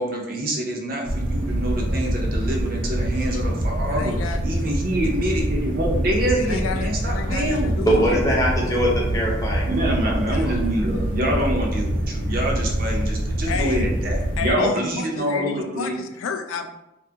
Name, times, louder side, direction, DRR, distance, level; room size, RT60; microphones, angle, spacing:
voice 1, 0.0-4.2 4.4-8.3 9.7-16.0, right 1 dB, 45° right, -1 dB, 0.5 m, -26 dB
sound 1, 1.1-14.5, right 1 dB, 80° right, 0.7 m, -25 dB
voice 2, 3.9-4.4 6.3-8.0 10.3-10.5 13.5-13.9 14.4-16.7, left 5 dB, 90° left, 6 dB, 0.3 m, -30 dB
voice 3, 7.9-10.5, equal, 15° left, -4 dB, 0.7 m, -23 dB
2.6 x 2.4 x 2.7 m, 0.89 s
head